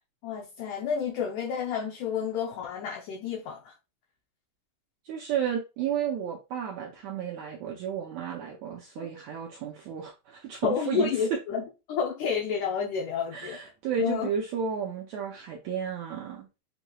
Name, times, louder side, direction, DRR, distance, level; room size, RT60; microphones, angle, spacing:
voice 1, 0.2-3.7 9.0-9.1 10.6-11.6 11.9-13.6 14.0-14.3, left 7 dB, 75° left, 2.0 m, -30 dB
voice 2, 5.0-11.1 13.3-16.5, right 7 dB, 80° right, 1.7 m, -32 dB
7.6 x 3.0 x 2.3 m
omnidirectional pair, 4.1 m